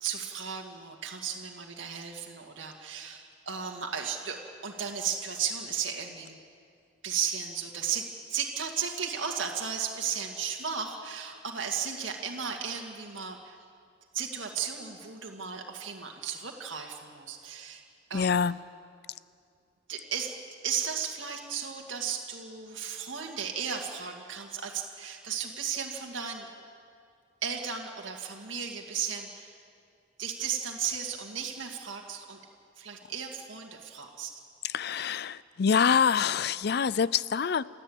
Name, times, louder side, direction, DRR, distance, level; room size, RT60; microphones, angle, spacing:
voice 1, 0.0-6.4 7.0-13.6 14.1-17.8 18.1-18.5 19.9-20.3 20.6-26.5 27.4-29.6 30.2-32.4 32.8-34.3, right 7 dB, 85° right, 1 dB, 2.0 m, -35 dB
voice 2, 18.1-18.6 34.6-37.7, left 6 dB, 55° left, 19 dB, 0.5 m, -26 dB
29.0 x 13.0 x 8.8 m, 2.3 s
head